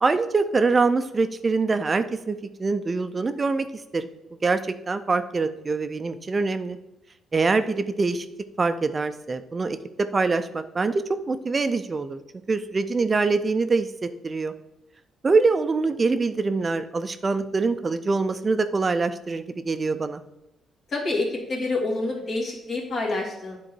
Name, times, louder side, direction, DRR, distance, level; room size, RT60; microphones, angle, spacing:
voice 1, 0.0-3.7 3.9-4.1 4.4-6.8 7.3-8.3 8.6-12.2 12.5-14.5 15.2-20.2, right 4 dB, 30° right, 10 dB, 0.4 m, -24 dB
voice 2, 20.9-23.6, left 2 dB, 50° left, -1 dB, 2.2 m, -27 dB
9.0 x 3.8 x 4.5 m, 0.91 s
cardioid pair, 90°, 0 cm